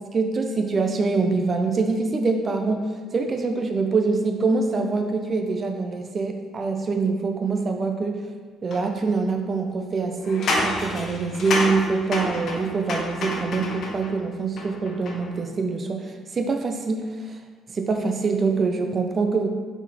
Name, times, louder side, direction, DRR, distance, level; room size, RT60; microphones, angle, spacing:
voice 1, 0.1-8.2 8.6-17.4 17.7-19.5, right 4 dB, 30° right, 5 dB, 0.6 m, -24 dB
sound 1, 8.7-8.8 10.2-14.1 14.6-15.3, left 2 dB, 55° left, 1.0 m, -28 dB
5.9 x 4.2 x 4.1 m, 1.5 s
cardioid pair, 135°, 0 cm